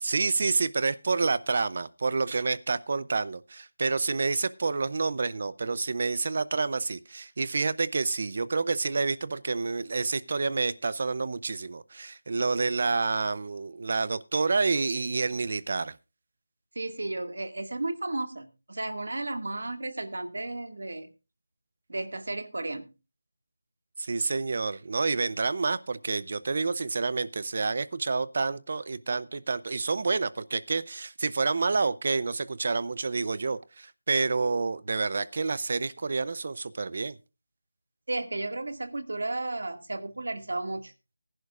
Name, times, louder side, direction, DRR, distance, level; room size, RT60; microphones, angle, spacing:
voice 1, 0.0-15.9 24.0-37.2, right 4 dB, 30° right, 18 dB, 0.6 m, -28 dB
voice 2, 16.8-21.1 21.9-22.9 38.1-40.9, right 2 dB, 70° right, 7 dB, 2.0 m, -33 dB
20.0 x 11.0 x 2.5 m, 0.29 s
figure-of-eight pair, 180°, 0 cm